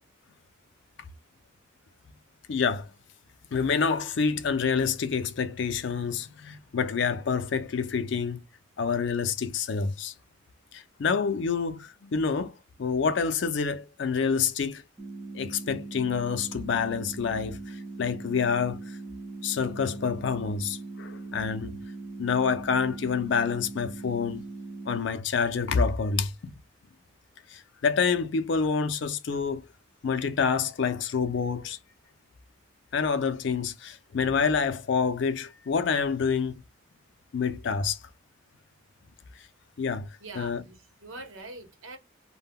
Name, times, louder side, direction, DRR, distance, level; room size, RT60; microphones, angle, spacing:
voice 1, 2.5-2.9 3.5-8.4 8.8-10.1 10.7-12.5 12.8-14.8 15.3-19.0 19.4-21.8 22.2-24.4 24.9-26.5 27.5-29.6 30.0-31.8 32.9-36.6 37.3-38.0 39.8-40.1 40.4-40.6, left 5 dB, 60° left, 0.4 m, -27 dB
sound 1, 15.0-25.0, right 3 dB, ahead, 0.5 m, -40 dB
voice 2, 40.2-42.0, right 2 dB, 75° right, 0.9 m, -43 dB
2.2 x 2.1 x 3.4 m
head